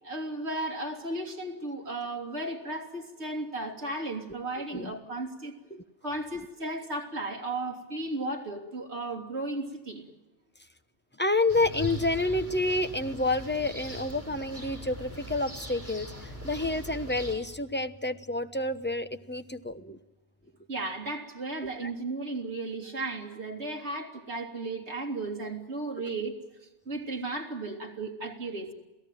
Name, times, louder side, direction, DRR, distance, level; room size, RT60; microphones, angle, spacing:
voice 1, 0.0-5.5 6.0-10.1 20.7-28.7, right 2 dB, 70° right, 1 dB, 3.4 m, -35 dB
voice 2, 4.6-4.9 5.7-5.8 11.2-20.0 21.6-21.9 26.1-26.2, left 2 dB, 10° left, 9 dB, 0.9 m, -29 dB
sound 1, 11.5-17.3, equal, 10° right, 6.7 m, -40 dB
28.0 x 17.5 x 9.1 m, 1.1 s
omnidirectional pair, 1.2 m